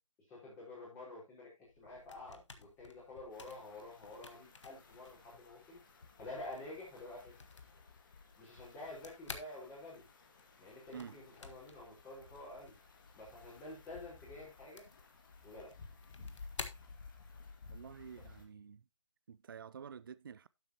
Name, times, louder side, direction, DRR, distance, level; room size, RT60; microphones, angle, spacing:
voice 1, 0.3-5.8 6.2-7.3 8.4-10.0 10.6-12.7 13.1-14.8 15.4-15.7, left 2 dB, 15° left, 5.0 m, -49 dB
sound 1, 1.7-17.6, left 4 dB, 65° left, 1.5 m, -54 dB
sound 2, 3.3-18.4, left 4 dB, 40° left, 2.1 m, -57 dB
voice 2, 17.7-18.8 19.3-20.5, right 7 dB, 45° right, 0.4 m, -49 dB
12.0 x 7.9 x 2.9 m
figure-of-eight pair, 155°, 17 cm